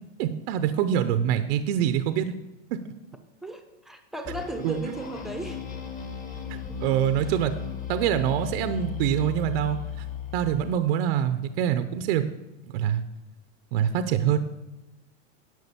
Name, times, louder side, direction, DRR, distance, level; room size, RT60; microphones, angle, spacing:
voice 1, 0.2-2.3 4.6-4.8 6.5-7.5 7.9-10.0 10.3-12.2 12.7-13.0 13.7-14.4, right 10 dB, 50° right, 10 dB, 0.7 m, -25 dB
voice 2, 3.4-5.6, right 1 dB, ahead, 7 dB, 0.8 m, -36 dB
sound 1, 4.3-10.8, left 7 dB, 20° left, 1.2 m, -36 dB
11.0 x 6.6 x 6.8 m, 1.0 s
supercardioid pair, 155°, 37 cm